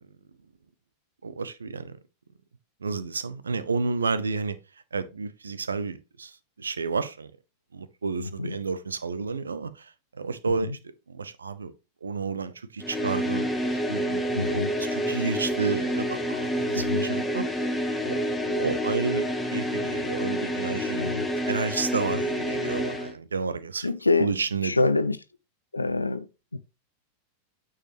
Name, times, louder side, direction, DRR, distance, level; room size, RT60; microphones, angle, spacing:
voice 1, 1.2-2.0 2.8-4.6 4.9-7.3 7.7-10.8 11.1-11.7 12.0-17.7 18.0-21.0 21.5-23.9 24.2-24.8, right 4 dB, 75° right, 0.6 m, -31 dB
voice 2, 8.2-8.6 10.6-10.7 14.4-14.7 16.8-17.1 21.0-21.3 22.1-22.2 23.8-24.3 24.6-25.2 25.7-26.3 26.5-26.6, left 3 dB, 80° left, 0.5 m, -26 dB
sound 1, 12.8-23.1, equal, 5° left, 1.2 m, -28 dB
8.8 x 4.8 x 3.1 m
figure-of-eight pair, 90°, 0 cm